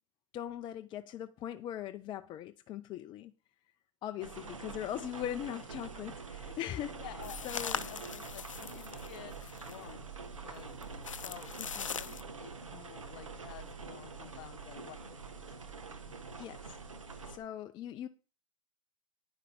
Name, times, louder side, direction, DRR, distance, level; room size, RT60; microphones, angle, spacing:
voice 1, 0.3-3.3 4.0-7.0 7.4-7.8 11.8-12.1 16.4-16.8 17.3-18.1, left 11 dB, 30° left, 0.5 m, -40 dB
voice 2, 4.2-4.6 7.0-10.7 11.2-11.6 11.9-12.1 12.4-15.5, left 15 dB, 55° left, 1.0 m, -51 dB
sound 1, 4.2-17.4, right 4 dB, 85° right, 1.3 m, -46 dB
sound 2, 7.2-9.9 10.5-12.2, left 6 dB, 85° left, 0.5 m, -41 dB
9.7 x 5.7 x 5.0 m
figure-of-eight pair, 95°, 16 cm